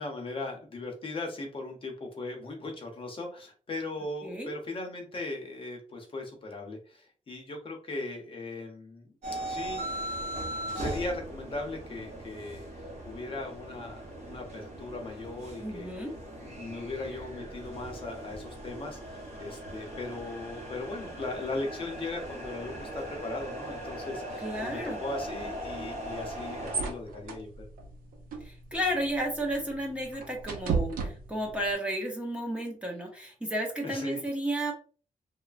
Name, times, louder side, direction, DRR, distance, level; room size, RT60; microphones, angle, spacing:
voice 1, 0.0-9.1 9.4-10.0 10.7-15.9 16.4-27.7 33.8-34.2, left 2 dB, 40° left, 2 dB, 0.7 m, -38 dB
voice 2, 4.2-4.5 15.6-16.1 24.4-25.0 28.4-34.7, equal, 10° right, -1 dB, 0.6 m, -32 dB
sound 1, 9.2-26.9, right 1 dB, 50° right, 0.9 m, -39 dB
sound 2, 26.0-31.7, right 5 dB, 85° right, 0.6 m, -36 dB
3.0 x 2.0 x 2.4 m, 0.39 s
wide cardioid pair, 155°, 14 cm